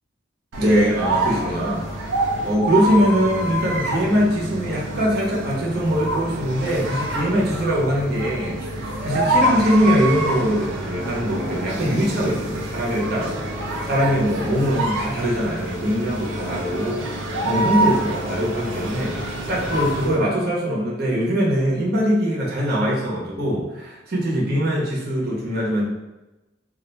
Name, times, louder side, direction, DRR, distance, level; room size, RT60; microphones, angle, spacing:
sound 1, 0.5-20.2, right 1 dB, 80° right, 0.6 m, -26 dB
voice 1, 0.6-2.2 2.4-8.5 9.0-25.8, equal, 55° right, -4 dB, 0.9 m, -22 dB
2.5 x 2.2 x 4.0 m, 1.0 s
head